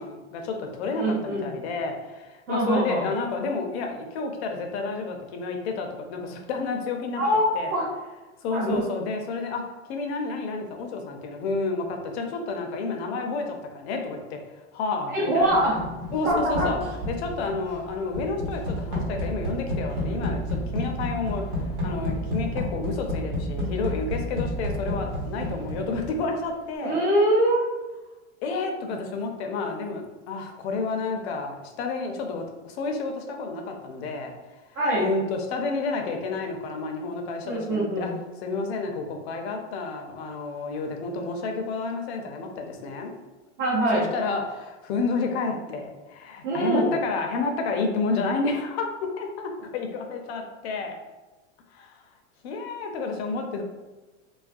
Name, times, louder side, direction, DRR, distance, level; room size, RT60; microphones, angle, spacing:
voice 1, 0.0-7.2 7.5-7.7 8.4-9.6 9.9-14.4 14.7-15.7 16.1-16.8 17.1-27.0 28.4-34.3 34.9-38.1 38.4-43.1 43.9-48.9 49.2-51.0 51.7-52.0 52.4-53.6, left 4 dB, 60° left, 3 dB, 0.5 m, -30 dB
voice 2, 0.9-1.5 2.5-3.0 7.2-7.8 8.5-8.8 15.1-15.7 16.2-16.7 26.8-27.6 34.7-35.0 37.4-38.1 43.6-44.0 46.4-46.8, right 1 dB, 25° right, -11 dB, 0.7 m, -23 dB
sound 1, 15.5-26.4, equal, 65° right, 1.0 m, -31 dB
2.3 x 2.2 x 2.5 m, 1.2 s
supercardioid pair, 140°, 36 cm